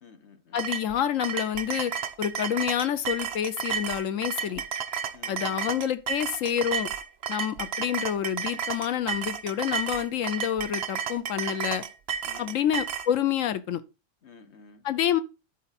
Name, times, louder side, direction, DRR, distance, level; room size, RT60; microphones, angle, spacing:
voice 1, 0.0-0.7 5.1-5.8 12.2-12.6 14.2-14.9, left 5 dB, 60° left, 1.4 m, -52 dB
voice 2, 0.5-1.9 2.2-4.6 5.3-6.9 7.3-11.8 12.4-13.8 14.8-15.2, left 10 dB, 90° left, 1.1 m, -28 dB
sound 1, 0.6-13.1, right 7 dB, 60° right, 0.9 m, -32 dB
12.0 x 4.3 x 4.1 m
omnidirectional pair, 1.3 m